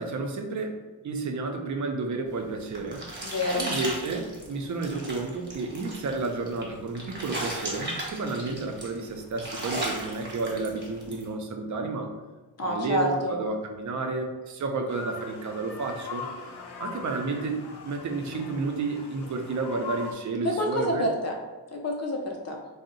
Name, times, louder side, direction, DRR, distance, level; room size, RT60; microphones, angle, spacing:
voice 1, 0.0-3.0 3.6-12.1 12.6-16.3 16.8-17.6 17.8-21.1, right 3 dB, 50° right, 4 dB, 0.5 m, -31 dB
sound 1, 2.4-11.3, right 1 dB, 30° right, 0.9 m, -36 dB
voice 2, 3.2-3.7 12.6-13.4 20.4-21.3 21.7-22.6, left 1 dB, 45° left, 0 dB, 0.6 m, -28 dB
sound 2, 14.9-20.1, left 5 dB, 85° left, 0.6 m, -41 dB
2.7 x 2.0 x 3.8 m, 1.2 s
wide cardioid pair, 95°, 38 cm